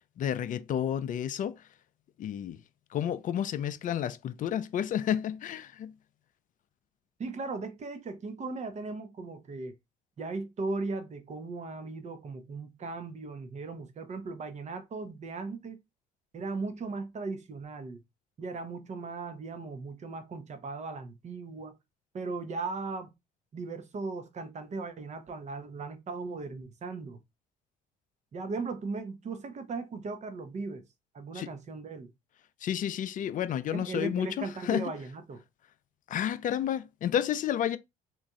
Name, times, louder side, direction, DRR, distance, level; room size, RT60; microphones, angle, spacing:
voice 1, 0.2-1.6 2.2-2.6 2.9-5.9 31.3-31.5 32.6-34.9 36.1-37.8, left 10 dB, 45° left, 0.5 m, -31 dB
voice 2, 7.2-9.7 10.2-15.8 16.3-18.0 18.4-21.7 22.1-23.1 23.5-27.2 28.3-30.8 31.1-32.1 33.7-35.4, right 3 dB, 40° right, 0.9 m, -37 dB
3.0 x 2.5 x 3.6 m
hypercardioid pair, 65°, 18 cm